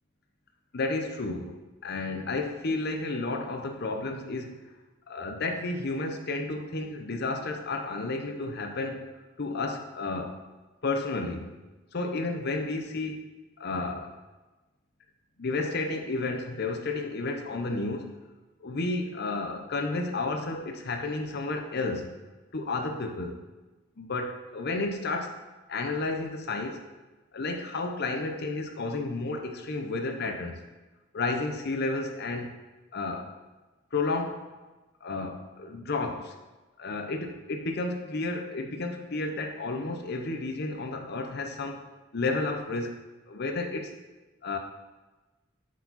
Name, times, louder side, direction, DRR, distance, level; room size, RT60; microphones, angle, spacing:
voice 1, 0.7-4.6 5.1-9.1 9.4-10.4 10.8-11.5 11.9-13.3 13.6-14.2 15.4-18.1 18.6-22.1 22.5-23.4 24.0-25.3 25.7-26.8 27.3-30.6 31.1-32.5 32.9-33.3 33.9-34.5 35.0-36.4 36.8-41.9 42.1-42.9 43.3-43.9 44.4-44.6, left 3 dB, 55° left, 5 dB, 0.8 m, -32 dB
8.2 x 4.7 x 4.2 m, 1.2 s
head